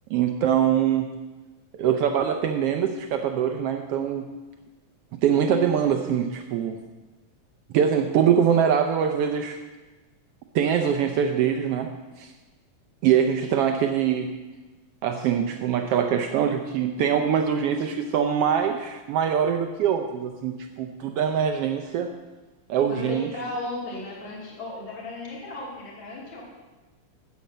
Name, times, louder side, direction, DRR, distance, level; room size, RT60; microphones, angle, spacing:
voice 1, 0.1-1.1 1.8-4.3 5.1-6.8 7.7-9.6 10.5-12.3 13.0-14.3 15.0-22.1 22.7-23.3, right 8 dB, 85° right, 5 dB, 1.3 m, -23 dB
voice 2, 22.9-26.4, left 2 dB, 40° left, -5 dB, 3.5 m, -35 dB
10.0 x 8.4 x 6.6 m, 1.2 s
omnidirectional pair, 3.4 m